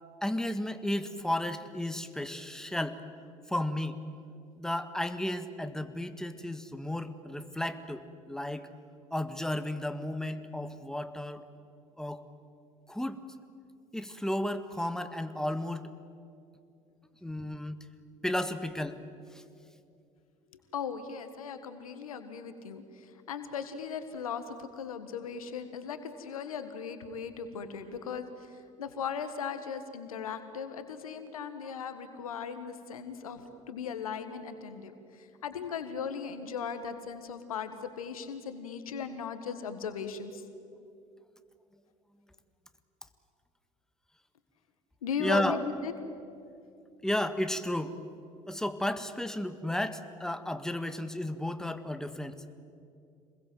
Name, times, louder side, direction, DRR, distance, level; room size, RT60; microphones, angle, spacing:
voice 1, 0.2-3.0 3.5-4.0 4.6-8.7 9.1-11.4 12.0-12.2 12.9-13.2 13.9-15.9 17.2-17.8 18.2-19.0 45.1-45.6 47.0-48.0 48.5-52.4, left 1 dB, 5° left, 9 dB, 1.6 m, -33 dB
voice 2, 20.7-28.5 28.8-40.4 45.0-45.9, left 6 dB, 85° left, 9 dB, 1.6 m, -38 dB
27.5 x 21.5 x 7.8 m, 2.6 s
hypercardioid pair, 65°, 18 cm